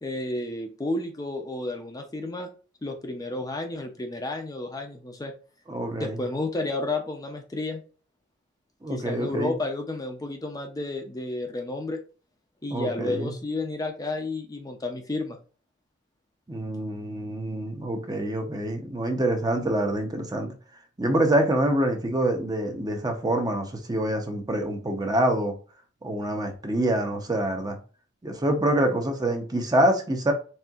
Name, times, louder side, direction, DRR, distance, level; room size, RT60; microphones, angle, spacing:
voice 1, 0.0-2.5 2.8-5.3 6.0-7.8 8.9-12.0 12.6-15.4, left 2 dB, 20° left, 0.5 m, -31 dB
voice 2, 5.7-6.2 8.8-9.5 12.7-13.3 16.5-20.5 21.0-25.5 26.0-27.8 28.2-30.3, right 1 dB, 20° right, 0.7 m, -26 dB
4.3 x 3.6 x 2.3 m
head